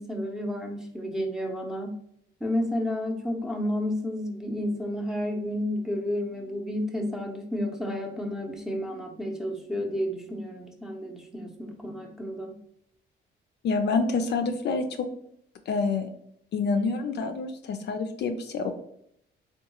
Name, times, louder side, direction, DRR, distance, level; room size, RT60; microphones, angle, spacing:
voice 1, 0.0-1.9 2.4-12.5, left 1 dB, 5° right, 1 dB, 0.6 m, -31 dB
voice 2, 13.6-15.1 15.7-16.1 16.5-18.7, left 4 dB, 60° left, 7 dB, 0.4 m, -27 dB
3.6 x 2.3 x 2.9 m, 0.70 s
cardioid pair, 90°, 20 cm